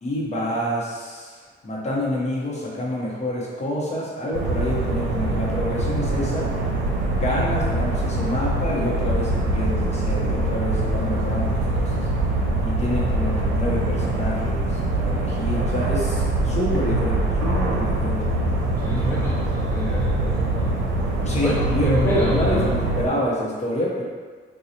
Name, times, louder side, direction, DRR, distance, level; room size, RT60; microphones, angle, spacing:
voice 1, 0.0-6.5 7.1-12.1 12.6-18.2 21.2-24.0, equal, 35° left, -5 dB, 1.0 m, -27 dB
sound 1, 4.3-23.1, right 2 dB, 75° right, 0.7 m, -23 dB
voice 2, 18.8-20.7 21.4-22.7, left 1 dB, 10° left, -6 dB, 0.5 m, -28 dB
3.9 x 2.4 x 2.8 m, 1.5 s
cardioid pair, 90°, 20 cm